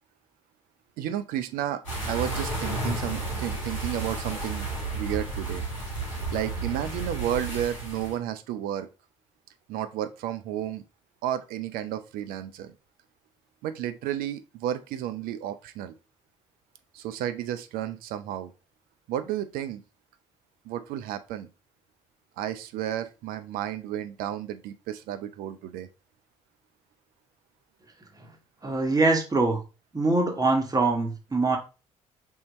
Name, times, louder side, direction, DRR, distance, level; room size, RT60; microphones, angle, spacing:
voice 1, 1.0-4.7 4.9-5.6 6.3-8.9 9.7-10.8 11.2-12.7 13.6-15.9 16.9-18.5 19.1-19.8 20.6-21.5 22.4-25.9, right 11 dB, 60° right, 11 dB, 0.5 m, -32 dB
sound 1, 1.8-8.1, right 2 dB, 85° left, 1.3 m, -32 dB
voice 2, 28.6-29.6 29.9-31.6, right 3 dB, 20° right, 1 dB, 1.3 m, -23 dB
5.5 x 2.7 x 3.0 m, 0.31 s
figure-of-eight pair, 50°, 17 cm